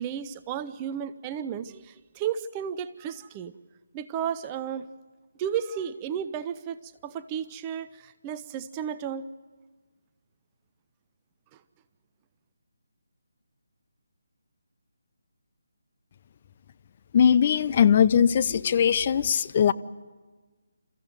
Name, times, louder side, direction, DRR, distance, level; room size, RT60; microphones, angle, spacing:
voice 1, 0.0-3.5 3.9-4.9 5.4-9.3, right 8 dB, 20° right, 12 dB, 0.7 m, -33 dB
voice 2, 17.1-19.7, left 8 dB, 40° left, 14 dB, 0.7 m, -20 dB
29.0 x 14.5 x 9.2 m, 1.3 s
figure-of-eight pair, 155°, 0 cm